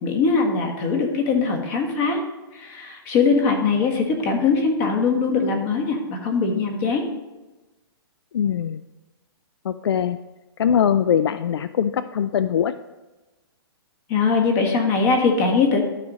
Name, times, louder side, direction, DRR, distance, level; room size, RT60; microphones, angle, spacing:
voice 1, 0.0-2.2 2.5-7.0 14.1-15.8, left 4 dB, 35° left, 3 dB, 1.6 m, -21 dB
voice 2, 8.3-8.8 9.6-10.2 10.6-12.7, left 8 dB, 80° left, 13 dB, 0.4 m, -21 dB
12.5 x 5.0 x 4.0 m, 1.1 s
hypercardioid pair, 150°, 13 cm